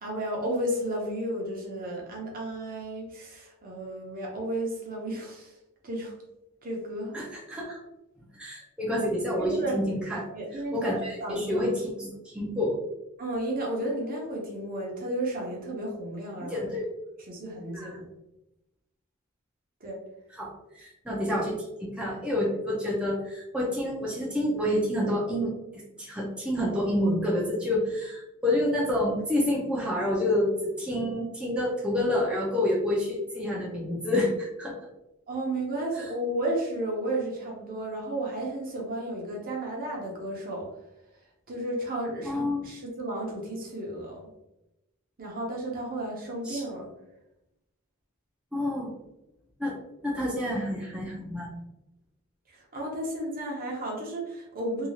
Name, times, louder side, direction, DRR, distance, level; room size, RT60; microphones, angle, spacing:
voice 1, 0.0-5.5 5.8-6.1 6.6-7.1 9.4-9.8 10.3-11.6 13.2-16.7 17.3-18.1 19.8-20.0 35.3-40.7 41.5-44.3 45.2-46.9 52.5-54.9, right 1 dB, 40° right, -2 dB, 0.7 m, -33 dB
voice 2, 7.1-7.8 8.3-10.2 10.7-12.1 12.3-12.8 16.5-16.8 17.7-17.9 20.3-20.5 20.7-25.5 26.0-34.8 35.9-36.0 42.2-42.6 46.4-46.6 48.5-48.9 49.6-49.7 50.0-51.5, left 1 dB, 5° right, -6 dB, 0.5 m, -28 dB
2.8 x 2.4 x 2.7 m, 0.92 s
head